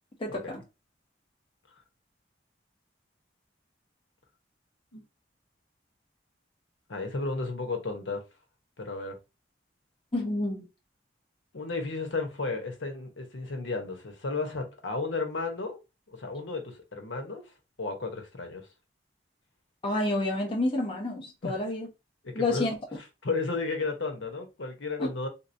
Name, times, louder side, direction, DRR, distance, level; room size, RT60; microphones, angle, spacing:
voice 1, 0.2-0.6 10.1-10.7 19.8-21.9 22.3-22.7 25.0-25.1, left 2 dB, 25° left, 0.8 m, -29 dB
voice 2, 6.9-8.2 8.8-9.2 11.5-15.8 16.1-17.4 17.8-18.7 21.4-21.5 22.2-22.7 23.2-25.3, left 3 dB, 85° left, 0.9 m, -33 dB
3.6 x 2.9 x 2.6 m
head